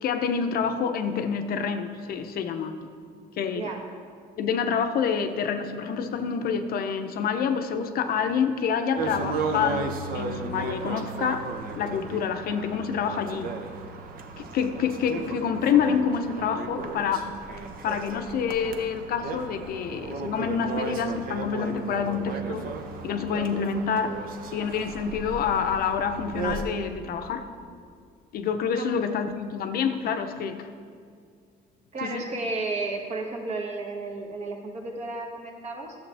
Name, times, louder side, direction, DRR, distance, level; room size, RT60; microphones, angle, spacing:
voice 1, 0.0-2.9 3.4-3.7 4.4-11.5 11.8-13.5 14.4-17.3 17.8-22.7 23.0-24.2 24.5-27.4 28.3-30.7 32.0-32.3, left 6 dB, 60° left, 7 dB, 0.6 m, -27 dB
sound 1, 9.0-26.6, right 4 dB, 60° right, 0.8 m, -35 dB
voice 2, 31.9-36.0, right 3 dB, 40° right, 1 dB, 1.3 m, -33 dB
11.0 x 7.3 x 3.4 m, 2.2 s
cardioid pair, 110°, 17 cm